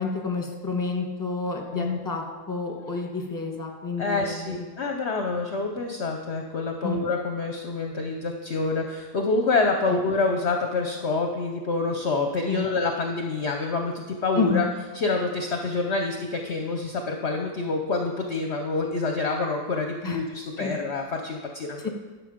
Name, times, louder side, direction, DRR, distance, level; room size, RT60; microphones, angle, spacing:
voice 1, 0.0-4.6 6.8-7.0 9.9-10.0 12.5-12.7 14.4-14.7 20.0-20.2 20.6-20.7 21.8-21.9, left 4 dB, 15° left, 2 dB, 1.1 m, -29 dB
voice 2, 4.0-14.7 14.9-21.9, left 3 dB, 55° left, 3 dB, 0.9 m, -27 dB
11.0 x 6.7 x 5.1 m, 1.3 s
omnidirectional pair, 1.7 m